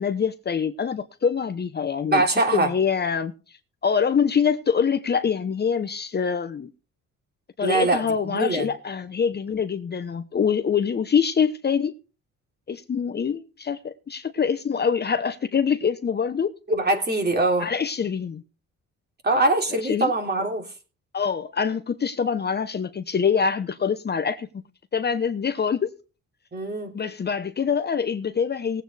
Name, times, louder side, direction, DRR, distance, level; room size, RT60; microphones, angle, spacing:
voice 1, 0.0-2.2 2.5-3.3 3.8-6.7 7.6-11.9 12.7-16.5 17.6-18.4 19.8-20.1 21.1-24.5 24.9-25.9 26.9-28.8, left 6 dB, 35° left, 0.8 m, -24 dB
voice 2, 2.1-2.7 7.6-8.7 16.7-17.7 19.2-20.7 26.5-26.9, right 2 dB, 35° right, 3.1 m, -23 dB
19.5 x 8.1 x 3.3 m
cardioid pair, 90°, 30 cm